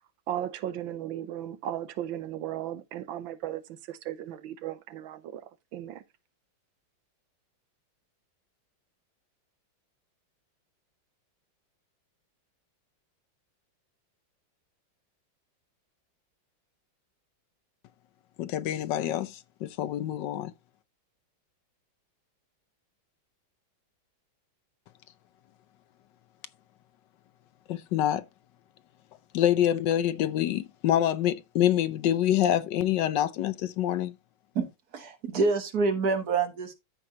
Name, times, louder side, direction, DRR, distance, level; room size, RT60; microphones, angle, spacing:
voice 1, 0.3-6.0, right 11 dB, 90° right, 1.6 m, -36 dB
voice 2, 18.4-20.5 27.7-28.2 29.3-34.1, left 11 dB, 75° left, 1.2 m, -26 dB
voice 3, 34.9-36.7, right 4 dB, 55° right, 1.8 m, -26 dB
13.5 x 5.1 x 2.7 m
omnidirectional pair, 2.1 m